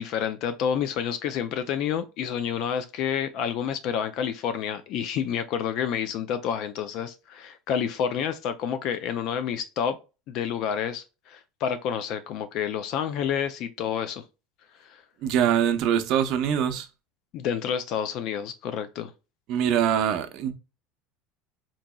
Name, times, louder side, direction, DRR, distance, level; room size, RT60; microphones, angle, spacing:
voice 1, 0.0-10.0 10.3-14.2 14.9-15.0 17.3-19.1, left 8 dB, 50° left, 0.4 m, -29 dB
voice 2, 15.2-16.9 19.5-20.5, right 9 dB, 50° right, 0.6 m, -23 dB
3.9 x 2.8 x 2.2 m
supercardioid pair, 140°, 0 cm